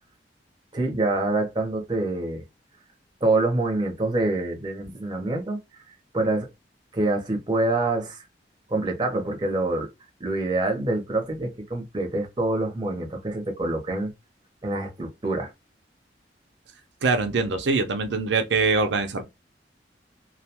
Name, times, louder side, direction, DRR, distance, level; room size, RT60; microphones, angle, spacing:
voice 1, 0.7-2.4 3.2-5.6 6.1-6.5 6.9-8.2 8.7-9.9 10.2-14.1 14.6-15.5, right 2 dB, 25° right, 0.8 m, -26 dB
voice 2, 17.0-19.2, right 4 dB, 90° right, 0.6 m, -23 dB
2.3 x 2.2 x 2.8 m
head